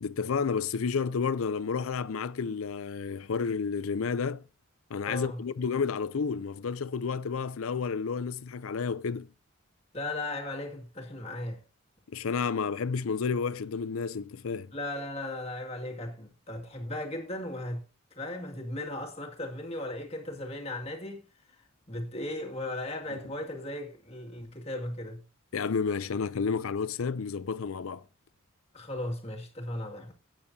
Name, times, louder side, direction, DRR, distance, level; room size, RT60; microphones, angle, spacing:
voice 1, 0.0-4.4 4.9-9.3 12.1-14.7 25.5-28.0, left 5 dB, 85° left, 0.5 m, -31 dB
voice 2, 5.1-5.4 9.9-11.6 14.7-17.8 18.1-21.2 21.9-25.2 28.7-30.1, left 1 dB, 30° left, 2.2 m, -36 dB
16.5 x 9.1 x 2.7 m
head